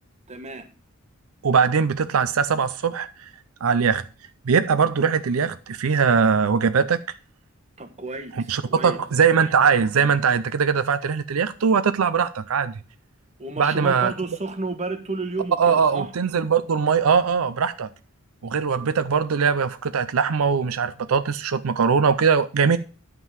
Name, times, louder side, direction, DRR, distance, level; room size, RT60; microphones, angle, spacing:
voice 1, 0.3-0.7 7.8-9.0 13.4-16.1, right 3 dB, 35° right, 1.2 m, -32 dB
voice 2, 1.4-3.3 3.6-4.0 4.5-7.0 8.5-12.7 13.6-14.1 15.6-17.9 18.4-22.8, right 6 dB, 80° right, 0.5 m, -21 dB
11.0 x 3.8 x 7.2 m
head